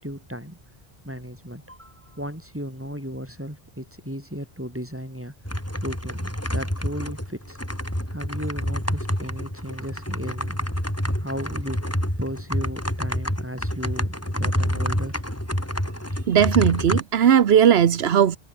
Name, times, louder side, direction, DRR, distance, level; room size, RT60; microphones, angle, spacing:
voice 1, 0.0-0.6 1.0-5.3 5.8-7.6 8.1-10.6 11.2-11.8 12.2-15.2, equal, 10° right, 6.5 m, -35 dB
sound 1, 5.5-17.0, equal, 15° left, 7.2 m, -28 dB
voice 2, 16.3-18.4, right 8 dB, 85° right, 1.1 m, -17 dB
omnidirectional pair, 1.0 m